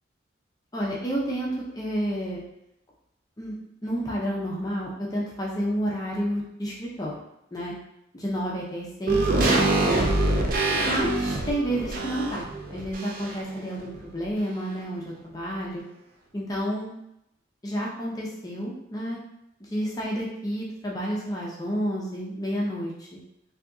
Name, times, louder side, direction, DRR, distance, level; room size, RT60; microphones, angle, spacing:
voice 1, 0.7-2.4 3.4-3.6 3.8-7.2 7.5-7.7 8.1-10.1 10.8-15.8 16.3-16.9 17.6-19.2 19.6-23.2, equal, 20° left, -4 dB, 0.5 m, -30 dB
sound 1, 9.1-13.6 13.8-13.9, right 2 dB, 50° right, 0.4 m, -25 dB
3.4 x 2.7 x 2.6 m, 0.81 s
head